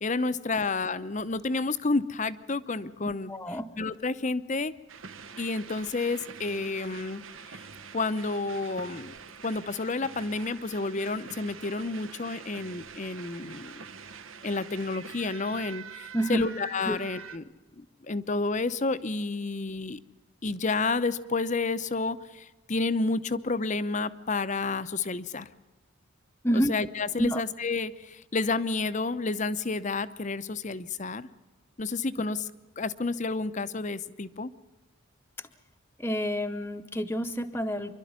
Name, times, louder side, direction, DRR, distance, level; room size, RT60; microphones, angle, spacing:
voice 1, 0.0-3.3 3.8-4.7 5.4-7.2 7.5-7.6 7.9-9.2 9.4-13.8 14.4-17.4 18.1-20.0 20.4-25.5 26.5-31.3 31.8-32.4 32.8-34.5, left 3 dB, 35° left, 14 dB, 0.7 m, -30 dB
voice 2, 3.0-3.7 16.1-16.4 16.9-17.0 26.4-26.7 27.2-27.4 35.4-35.5 36.0-37.9, equal, 10° left, 5 dB, 0.8 m, -29 dB
sound 1, 4.9-17.4, right 6 dB, 70° right, 1.2 m, -45 dB
26.5 x 12.0 x 9.5 m, 1.2 s
head